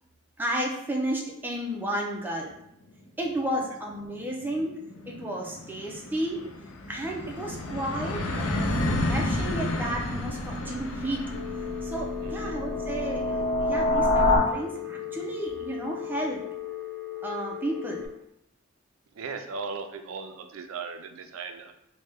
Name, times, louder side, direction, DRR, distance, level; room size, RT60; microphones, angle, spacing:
voice 1, 0.4-2.5 3.2-4.8 5.0-6.4 6.9-11.2 11.8-16.4 17.2-18.1, right 1 dB, 10° right, -1 dB, 0.4 m, -32 dB
sound 1, 3.0-3.1 3.4-3.5 3.8-15.2, left 1 dB, 80° left, 0.5 m, -33 dB
sound 2, 8.8-14.4, left 2 dB, 35° left, 0.8 m, -28 dB
Telephone, 11.3-18.1, left 14 dB, 55° left, 1.1 m, -37 dB
voice 2, 12.2-12.6 19.1-21.7, right 5 dB, 85° right, 7 dB, 0.4 m, -37 dB
3.2 x 2.1 x 3.4 m, 0.77 s
head